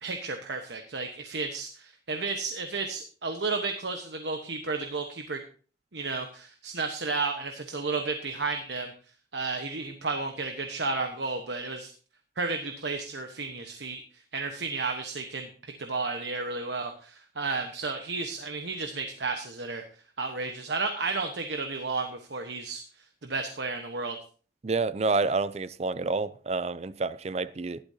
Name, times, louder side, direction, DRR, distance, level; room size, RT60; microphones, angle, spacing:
voice 1, 0.0-5.4 5.9-8.9 9.3-11.9 12.4-14.0 14.3-19.8 20.2-22.8 23.2-24.2, right 3 dB, 75° right, 1.2 m, -32 dB
voice 2, 24.6-27.8, right 3 dB, 35° right, 0.5 m, -28 dB
15.5 x 11.5 x 2.8 m
head